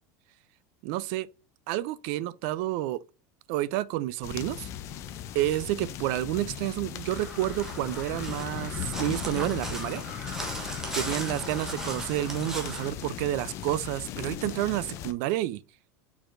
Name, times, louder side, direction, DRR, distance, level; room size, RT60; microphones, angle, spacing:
voice 1, 0.8-1.3 1.7-3.0 3.5-4.7 5.3-10.0 10.9-15.6, right 15 dB, 45° right, 0.3 m, -30 dB
sound 1, 4.2-15.1, left 10 dB, 30° left, 0.4 m, -38 dB
Crow, 7.0-12.9, right 1 dB, 5° right, 1.0 m, -38 dB
4.7 x 4.2 x 2.5 m
supercardioid pair, 170°, 9 cm